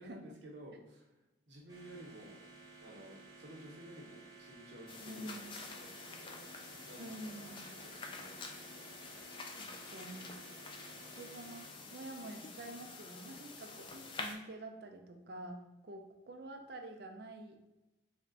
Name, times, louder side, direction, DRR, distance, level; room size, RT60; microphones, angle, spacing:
voice 1, 0.0-2.4 2.8-6.5 6.8-9.0, right 1 dB, 70° right, -2 dB, 0.9 m, -54 dB
sound 1, 1.7-11.7, right 3 dB, 20° right, 0.8 m, -56 dB
sound 2, 4.9-14.3, left 3 dB, 25° left, 0.3 m, -48 dB
voice 2, 5.0-5.5 7.0-7.7 9.5-10.3 11.1-17.6, right 1 dB, 55° right, 4 dB, 0.4 m, -48 dB
3.4 x 2.2 x 3.9 m, 1.0 s
head